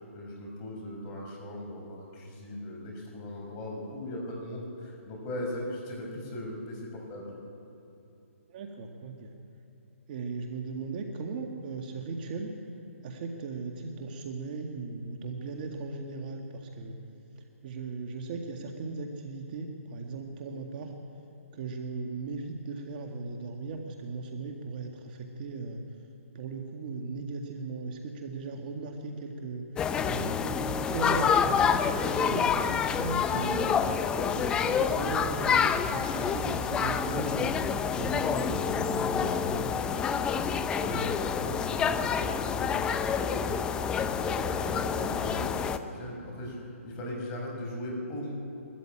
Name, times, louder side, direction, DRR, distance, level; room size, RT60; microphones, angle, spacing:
voice 1, 0.1-7.3 40.8-48.3, left 1 dB, 25° left, -1 dB, 5.4 m, -39 dB
voice 2, 8.5-9.3 10.1-12.5 13.0-16.9 17.6-20.9 21.5-25.8 26.3-29.6 30.0-32.5 33.0-37.5 38.0-39.7, right 4 dB, 40° right, 3 dB, 1.9 m, -37 dB
sound 1, 29.8-45.8, left 7 dB, 10° left, 0.6 m, -28 dB
21.5 x 13.5 x 9.0 m, 2.8 s
hypercardioid pair, 150°, 8 cm